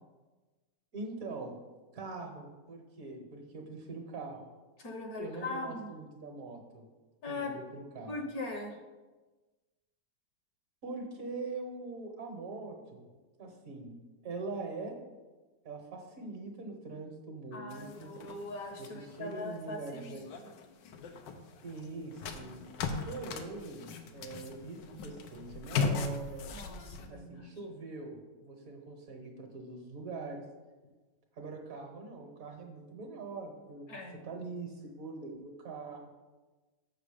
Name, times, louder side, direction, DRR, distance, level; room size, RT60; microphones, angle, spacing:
voice 1, 0.9-1.5 1.9-4.5 5.2-6.8 7.3-8.1 10.8-13.0 13.4-14.0 14.2-14.9 15.6-18.1 18.8-20.2 21.6-22.6 23.1-26.4 27.1-30.4 31.3-36.1, right 3 dB, 55° right, 3 dB, 1.5 m, -43 dB
voice 2, 4.8-5.9 7.2-7.5 8.1-8.8 17.5-20.5 26.5-27.5 33.9-34.2, left 2 dB, 60° left, 3 dB, 1.4 m, -40 dB
sound 1, 17.7-27.1, left 4 dB, 85° left, 1.4 m, -39 dB
6.8 x 6.2 x 5.0 m, 1.2 s
omnidirectional pair, 1.9 m